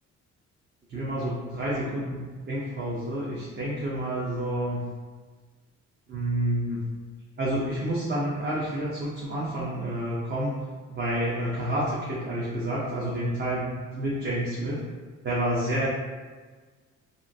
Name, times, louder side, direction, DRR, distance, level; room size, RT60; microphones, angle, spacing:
voice 1, 0.9-4.8 6.1-6.8 7.4-10.6 10.9-14.8 15.2-15.9, right 1 dB, 35° right, -7 dB, 0.7 m, -29 dB
2.8 x 2.5 x 2.6 m, 1.4 s
cardioid pair, 90°, 30 cm